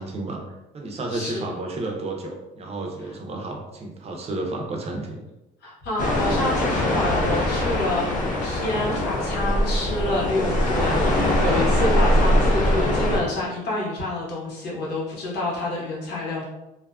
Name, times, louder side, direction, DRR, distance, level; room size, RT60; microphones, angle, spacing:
voice 1, 0.0-5.3, right 2 dB, 40° right, 1 dB, 0.5 m, -32 dB
voice 2, 1.1-1.6 5.6-16.4, left 1 dB, 85° left, -5 dB, 1.1 m, -28 dB
sound 1, 6.0-13.2, left 1 dB, 50° left, 0.8 m, -22 dB
2.6 x 2.4 x 2.3 m, 0.96 s
cardioid pair, 110°, 17 cm